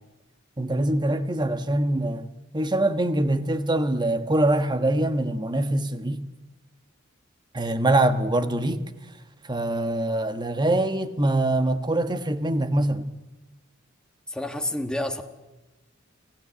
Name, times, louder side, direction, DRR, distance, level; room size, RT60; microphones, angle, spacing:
voice 1, 0.6-2.3 2.5-6.2 7.5-8.8 9.4-13.1, right 1 dB, 20° right, 1.3 m, -24 dB
voice 2, 14.3-15.2, left 1 dB, 5° left, 1.4 m, -29 dB
27.5 x 15.5 x 8.5 m
head